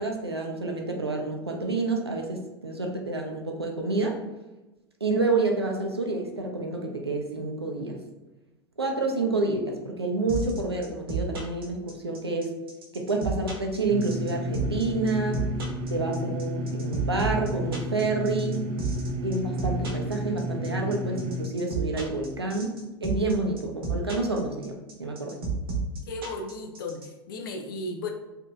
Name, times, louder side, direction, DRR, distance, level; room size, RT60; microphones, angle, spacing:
voice 1, 0.0-4.2 5.0-8.0 8.8-12.5 12.9-15.4 15.9-18.6 19.2-22.8 23.0-25.4, right 3 dB, 85° right, 1 dB, 0.6 m, -28 dB
sound 1, 10.3-27.1, right 5 dB, 65° right, 0.9 m, -31 dB
sound 2, 13.9-21.5, equal, 40° right, 0.5 m, -32 dB
voice 2, 26.1-28.1, left 2 dB, 60° left, 4 dB, 0.6 m, -35 dB
4.2 x 2.7 x 2.4 m, 1.0 s
figure-of-eight pair, 85°, 13 cm